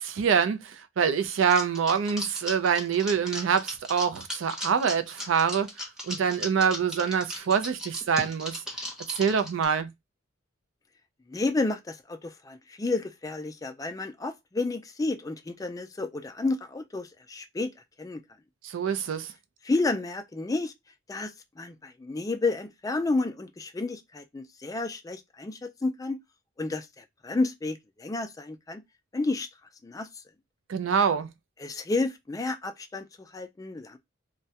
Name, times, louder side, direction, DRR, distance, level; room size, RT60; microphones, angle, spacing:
voice 1, 0.0-5.7 6.1-8.6 9.1-9.9 18.7-19.3 30.7-31.3, right 6 dB, 85° right, 0.4 m, -25 dB
sound 1, 1.5-9.6, left 1 dB, 5° right, 0.7 m, -37 dB
voice 2, 11.3-17.7 18.0-18.2 19.6-20.7 21.1-26.2 26.6-28.8 29.1-29.5 29.8-30.1 31.6-34.0, left 3 dB, 20° left, 0.3 m, -31 dB
2.3 x 2.1 x 2.7 m
head